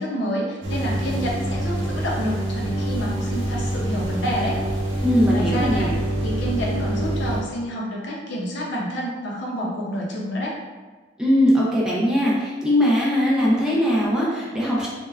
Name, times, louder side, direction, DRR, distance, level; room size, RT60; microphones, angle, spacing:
voice 1, 0.0-4.6 4.9-5.0 5.3-5.9 6.2-10.5, equal, 65° left, -4 dB, 0.5 m, -28 dB
sound 1, 0.6-7.4, right 1 dB, 80° right, 0.6 m, -26 dB
voice 2, 5.0-6.0 11.2-14.9, equal, 5° right, -7 dB, 0.4 m, -20 dB
3.3 x 2.1 x 2.3 m, 1.3 s
head